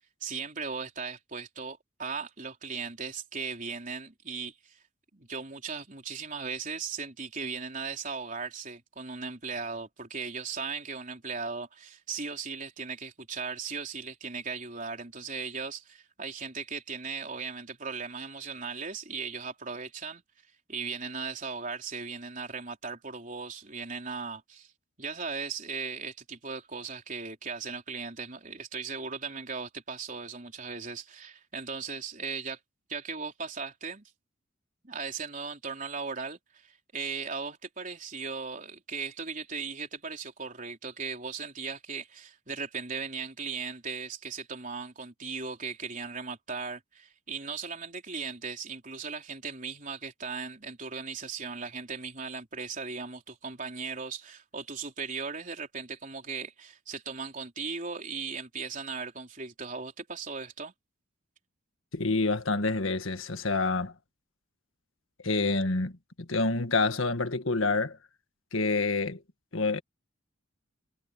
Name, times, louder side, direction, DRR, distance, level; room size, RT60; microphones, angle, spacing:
voice 1, 0.2-4.8 5.1-20.2 20.7-24.7 25.0-32.6 32.9-34.1 34.8-60.7, right 5 dB, 40° right, 4.1 m, -37 dB
voice 2, 61.9-63.9 65.2-68.0 68.5-69.2 69.5-69.8, left 3 dB, 75° left, 1.7 m, -27 dB
head